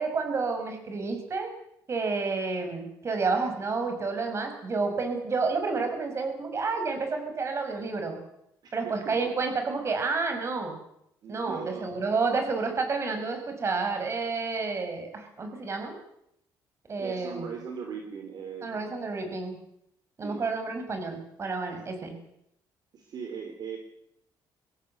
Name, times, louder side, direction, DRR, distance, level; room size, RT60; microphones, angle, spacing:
voice 1, 0.0-1.5 1.9-8.2 8.7-10.8 11.3-16.0 16.9-17.5 18.6-19.6 20.2-22.1, right 4 dB, 35° right, 5 dB, 6.1 m, -30 dB
voice 2, 8.6-9.3 11.2-11.9 17.0-18.9 20.2-20.5 21.7-21.8 22.9-23.8, right 6 dB, 55° right, 3 dB, 3.5 m, -39 dB
23.0 x 17.5 x 8.0 m, 0.78 s
cardioid pair, 130°, 8 cm